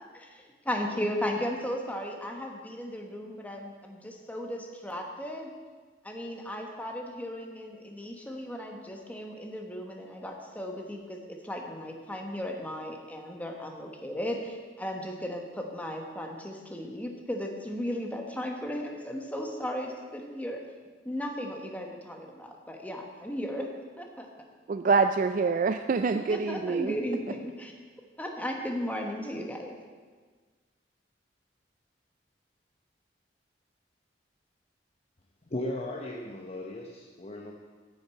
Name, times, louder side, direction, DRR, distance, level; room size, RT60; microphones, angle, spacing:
voice 1, 0.1-5.5 6.0-20.6 21.0-23.7 24.0-24.3 26.3-27.7 28.2-29.8, equal, 10° left, 2 dB, 1.3 m, -36 dB
voice 2, 24.7-26.9, right 4 dB, 45° right, 9 dB, 0.3 m, -25 dB
voice 3, 35.5-37.5, left 1 dB, 35° left, -1 dB, 0.9 m, -36 dB
10.5 x 6.5 x 8.3 m, 1.5 s
head